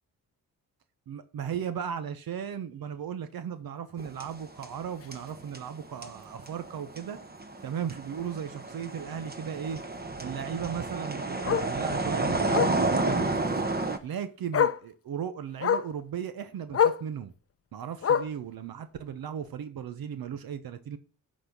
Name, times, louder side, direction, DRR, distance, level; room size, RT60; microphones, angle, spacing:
voice 1, 1.1-7.2 7.6-9.8 10.2-13.4 14.0-17.3 17.7-21.0, right 8 dB, 75° right, 0.9 m, -36 dB
sound 1, 4.0-4.9 5.1-14.0, right 2 dB, 25° right, 1.2 m, -31 dB
Bark, 5.0-5.2 5.6-5.7 6.1-6.2 6.4-6.5 7.9-8.0 10.5-10.6 11.5-11.7 12.5-12.8 14.0-14.1 14.5-14.9 15.6-15.9 16.7-17.1 18.0-18.4 19.4-19.5, left 8 dB, 40° left, 0.6 m, -26 dB
11.5 x 4.2 x 6.0 m
cardioid pair, 65°, 36 cm